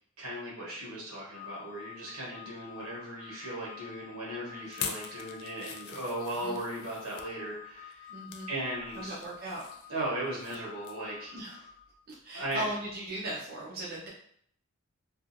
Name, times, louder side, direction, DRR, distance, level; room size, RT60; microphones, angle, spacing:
voice 1, 0.2-8.1 8.5-9.1 9.9-11.3 12.3-12.7, right 1 dB, 85° right, -5 dB, 1.1 m, -37 dB
Organ, 1.3-12.1, left 11 dB, 10° left, 0.8 m, -49 dB
sound 1, 4.7-7.3 7.9-8.5 8.9-10.6 10.8-11.1 11.5-11.6, left 7 dB, 70° left, 0.3 m, -43 dB
voice 2, 6.2-6.6 8.1-8.5 8.9-9.6 11.3-11.6 12.1-14.1, right 1 dB, 45° right, -5 dB, 0.6 m, -38 dB
2.6 x 2.4 x 2.5 m, 0.66 s
head